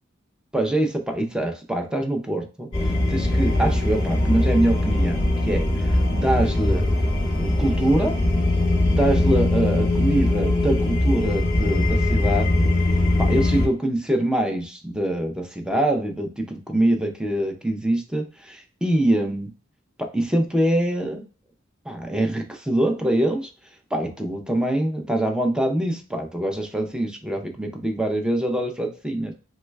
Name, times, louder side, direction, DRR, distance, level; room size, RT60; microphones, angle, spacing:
voice 1, 0.5-2.7 3.1-5.2 5.5-6.9 7.4-8.2 8.9-12.7 13.2-19.5 20.0-21.2 21.9-23.5 23.9-29.3, right 1 dB, 5° right, 4 dB, 0.4 m, -24 dB
sound 1, 2.7-13.7, left 1 dB, 25° left, 1.1 m, -21 dB
3.1 x 2.2 x 3.2 m, 0.36 s
head